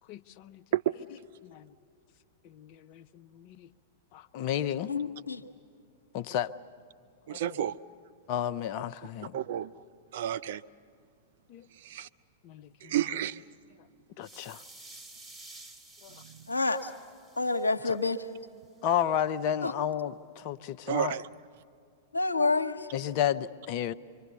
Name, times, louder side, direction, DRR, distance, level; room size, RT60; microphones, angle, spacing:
voice 1, 0.1-0.6 1.4-1.7 2.4-3.7 4.1-4.9 6.1-6.6 7.3-7.6 8.3-9.4 11.5-11.7 12.4-13.0 13.8-13.9 14.2-14.6 16.0-16.2 17.9-18.0 18.8-21.2 22.9-23.9, left 10 dB, 45° left, 12 dB, 0.6 m, -32 dB
voice 2, 4.9-5.4 16.5-16.9 17.4-18.2 19.6-19.7 22.1-22.9, left 3 dB, 85° left, 8 dB, 1.0 m, -28 dB
voice 3, 7.3-7.8 9.3-9.7 10.1-10.6 11.8-12.1 12.8-13.4 20.9-21.2, right 11 dB, 55° right, 13 dB, 0.5 m, -30 dB
sound 1, 14.2-18.3, right 2 dB, 10° right, 2.3 m, -51 dB
25.5 x 24.0 x 7.0 m, 2.4 s
figure-of-eight pair, 100°, 0 cm